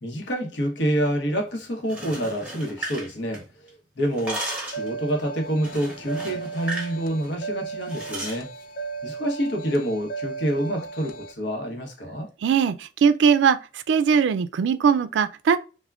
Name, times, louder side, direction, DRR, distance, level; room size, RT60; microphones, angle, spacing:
voice 1, 0.0-8.5 9.0-12.3, equal, 80° left, 0.9 m, -27 dB
sound 1, 1.8-3.7 4.0-4.9 5.6-7.0 7.2-7.4 7.9-8.4, right 1 dB, 5° right, 0.8 m, -35 dB
sound 2, 4.7-11.3, right 4 dB, 50° left, 0.3 m, -36 dB
voice 2, 12.4-13.6 13.9-15.6, right 6 dB, 85° right, 0.3 m, -20 dB
3.4 x 2.1 x 2.2 m
head